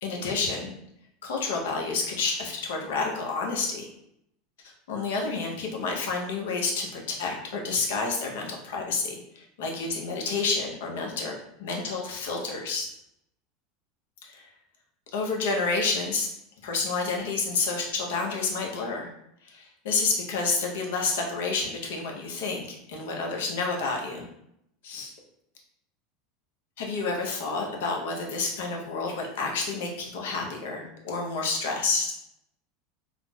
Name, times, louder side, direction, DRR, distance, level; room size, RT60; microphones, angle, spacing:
voice 1, 0.0-0.8 1.2-3.9 4.6-12.9 14.3-14.5 15.1-16.3 16.6-19.1 19.4-24.3 24.8-25.1 26.8-32.1, left 4 dB, 75° left, 0 dB, 0.6 m, -29 dB
3.7 x 2.0 x 2.2 m, 0.76 s
hypercardioid pair, 95°, 0 cm